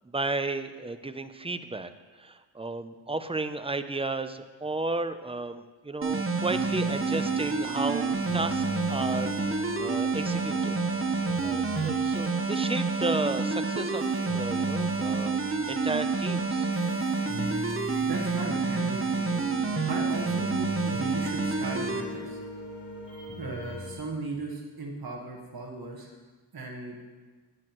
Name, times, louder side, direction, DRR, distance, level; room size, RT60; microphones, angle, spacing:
voice 1, 0.1-1.9 2.2-8.6 8.9-10.8 11.4-16.7, right 2 dB, 15° right, 10 dB, 0.5 m, -33 dB
sound 1, 6.0-22.0, right 4 dB, 30° right, 0.9 m, -28 dB
sound 2, 6.4-23.9, left 1 dB, 75° left, 3.6 m, -41 dB
voice 2, 17.7-19.0 19.9-22.4 23.4-26.2 26.5-27.0, right 3 dB, 55° right, -1 dB, 1.5 m, -37 dB
13.5 x 9.7 x 3.0 m, 1.4 s
wide cardioid pair, 75°, 44 cm